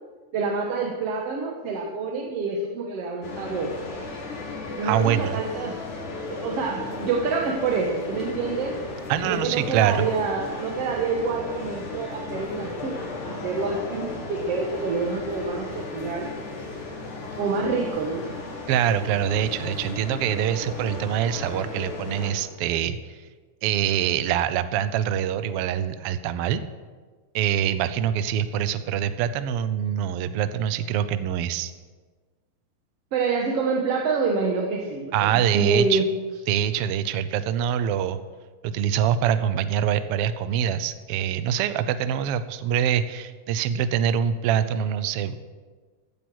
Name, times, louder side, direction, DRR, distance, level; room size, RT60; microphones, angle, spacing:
voice 1, 0.3-3.8 4.8-5.8 6.3-8.8 9.3-13.0 13.2-16.3 17.4-18.3 33.1-36.0, right 4 dB, 60° right, 0 dB, 2.1 m, -27 dB
sound 1, 3.2-22.3, left 3 dB, 90° left, 4.0 m, -35 dB
voice 2, 4.8-5.4 9.1-10.1 18.7-23.0 23.6-26.6 27.3-31.7 35.1-36.0 36.5-38.2 38.6-45.4, right 9 dB, 80° right, 12 dB, 1.3 m, -24 dB
15.5 x 9.4 x 6.2 m, 1.4 s
omnidirectional pair, 3.4 m